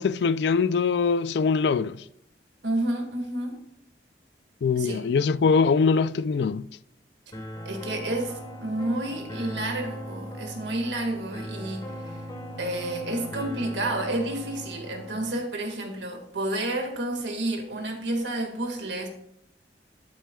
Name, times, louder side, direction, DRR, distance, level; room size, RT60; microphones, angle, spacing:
voice 1, 0.0-2.0 4.6-6.7, left 5 dB, 70° left, 0.4 m, -23 dB
voice 2, 2.6-3.6 4.8-5.0 7.7-12.1 12.6-19.1, right 1 dB, 80° right, 1.9 m, -30 dB
sound 1, 7.3-15.3, equal, 25° left, 1.4 m, -38 dB
12.0 x 9.1 x 2.3 m
head